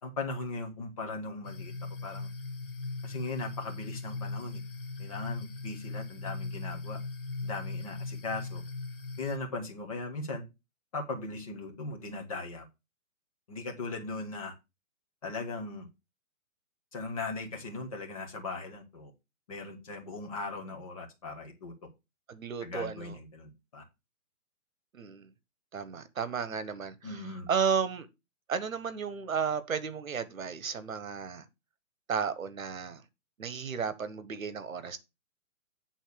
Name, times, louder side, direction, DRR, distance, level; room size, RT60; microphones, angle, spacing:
voice 1, 0.0-1.7 2.0-2.3 3.0-4.6 5.0-7.0 7.4-8.6 9.2-10.5 10.9-12.6 13.5-14.5 15.2-15.9 16.9-19.1 19.5-21.7 22.6-23.8 27.0-27.5, left 3 dB, 25° left, 1.5 m, -38 dB
sound 1, 1.4-9.4, left 3 dB, 40° left, 1.0 m, -39 dB
voice 2, 22.3-23.1 24.9-25.3 25.7-27.2 27.5-28.1 28.5-31.4 32.1-33.0 33.4-35.0, right 6 dB, 65° right, 1.3 m, -33 dB
9.1 x 3.9 x 6.4 m
hypercardioid pair, 175°, 43 cm